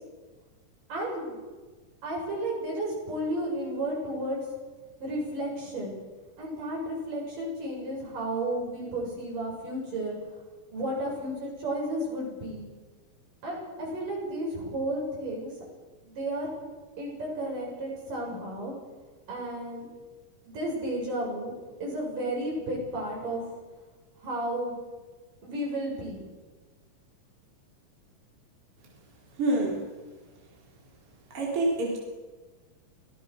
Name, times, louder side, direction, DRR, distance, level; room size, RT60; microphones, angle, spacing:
voice 1, 0.9-1.4 2.0-4.4 5.0-6.0 6.4-10.2 10.7-12.7 13.4-15.5 16.0-16.5 17.0-18.7 19.3-19.9 20.4-21.5 21.8-23.4 24.2-24.8 25.4-26.2, right 1 dB, 75° right, -2 dB, 8.9 m, -32 dB
voice 2, 29.4-29.8 31.3-32.0, right 2 dB, 40° right, -3 dB, 4.6 m, -26 dB
25.0 x 18.0 x 6.5 m, 1.3 s
omnidirectional pair, 3.8 m